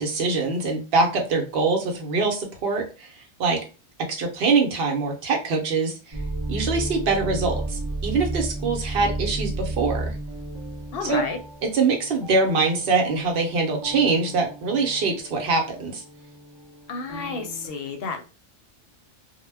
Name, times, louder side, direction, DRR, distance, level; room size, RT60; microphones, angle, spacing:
voice 1, 0.0-3.1 3.4-3.6 4.1-5.9 6.5-10.1 11.1-11.2 11.7-16.0, right 4 dB, 60° right, 2 dB, 0.9 m, -23 dB
sound 1, 6.1-17.7, right 2 dB, 30° right, 0.5 m, -33 dB
voice 2, 10.9-11.4 16.9-18.2, left 4 dB, 65° left, 5 dB, 0.7 m, -31 dB
2.1 x 2.1 x 3.3 m, 0.33 s
omnidirectional pair, 1.2 m